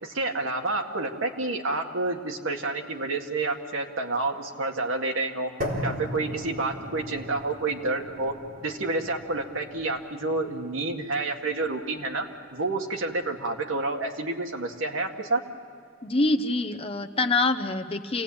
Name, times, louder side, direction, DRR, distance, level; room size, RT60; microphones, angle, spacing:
voice 1, 0.0-5.5 5.8-8.3 8.6-12.3 12.5-15.4, right 2 dB, 75° right, 3 dB, 2.0 m, -29 dB
sound 1, 5.6-13.6, left 1 dB, 45° right, 4.2 m, -38 dB
voice 2, 16.0-18.2, left 2 dB, 30° left, 7 dB, 0.9 m, -25 dB
28.0 x 18.0 x 8.8 m, 2.4 s
head